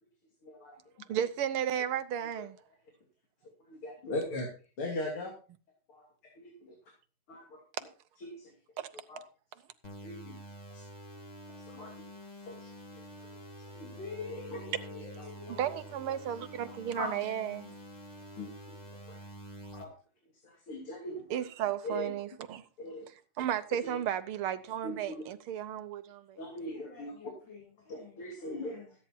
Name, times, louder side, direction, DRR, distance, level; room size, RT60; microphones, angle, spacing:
voice 1, 0.4-0.8 3.7-4.5 4.8-5.3 5.9-6.1 6.4-6.7 7.3-7.4 8.2-8.5 9.1-9.2 10.0-10.4 10.7-10.8 11.7-11.9 12.5-12.7 13.7-13.9 14.5-14.6 15.5-15.6 16.6-17.1 18.4-18.8 19.1-19.2 19.7-19.9 20.7-21.2 21.8-22.1 22.8-23.1 23.8-24.0 24.8-25.2 26.4-27.1 27.9-28.8, left 1 dB, 75° left, 3.9 m, -39 dB
voice 2, 1.1-2.6 8.8-8.9 15.5-17.7 21.3-22.7 23.4-26.4, right 10 dB, 80° right, 1.7 m, -34 dB
sound 1, 9.8-19.8, equal, 20° left, 2.5 m, -48 dB
voice 3, 13.8-15.8 26.6-28.9, left 5 dB, 55° left, 6.2 m, -47 dB
14.5 x 9.7 x 4.5 m
omnidirectional pair, 2.4 m